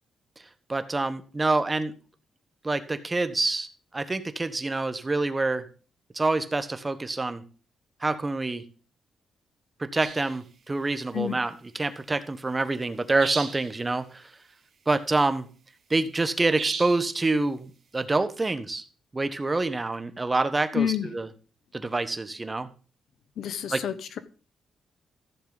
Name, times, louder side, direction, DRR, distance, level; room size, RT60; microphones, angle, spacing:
voice 1, 0.7-1.9 2.6-5.7 6.1-7.4 8.0-8.6 9.8-14.3 14.9-15.5 15.9-18.8 19.1-21.3 21.7-22.7 23.7-23.8, right 2 dB, 25° right, 11 dB, 1.1 m, -27 dB
sound 1, 10.0-10.4 13.2-13.8 16.6-17.1, right 6 dB, 65° right, 1.8 m, -34 dB
voice 2, 20.7-21.1 23.4-24.2, left 9 dB, 75° left, 13 dB, 1.0 m, -28 dB
14.5 x 7.1 x 4.0 m, 0.37 s
cardioid pair, 90°, 0 cm